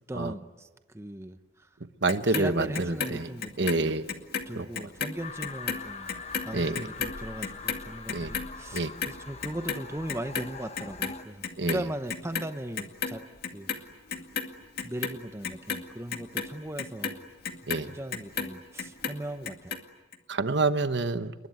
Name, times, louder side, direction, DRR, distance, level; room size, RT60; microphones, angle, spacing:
voice 1, 0.1-0.7 0.9-1.7 2.3-3.7 4.5-6.1 6.5-13.3 13.5-13.9 14.8-17.2 17.9-19.8, right 1 dB, 15° right, 9 dB, 0.9 m, -38 dB
voice 2, 2.0-3.3 3.6-4.1 4.5-4.7 6.5-6.9 8.1-8.3 8.7-8.9 11.6-11.8 17.7-17.9 20.3-21.3, right 3 dB, 60° right, 11 dB, 1.1 m, -27 dB
Clock, 2.1-4.5 4.7-11.2 11.4-12.5 12.8-13.8 14.1-18.5 18.8-19.8 20.1-20.2, left 6 dB, 50° left, 2.1 m, -33 dB
sound 1, 5.2-11.2, left 4 dB, 35° left, 1.1 m, -43 dB
28.5 x 22.0 x 9.4 m, 1.2 s
head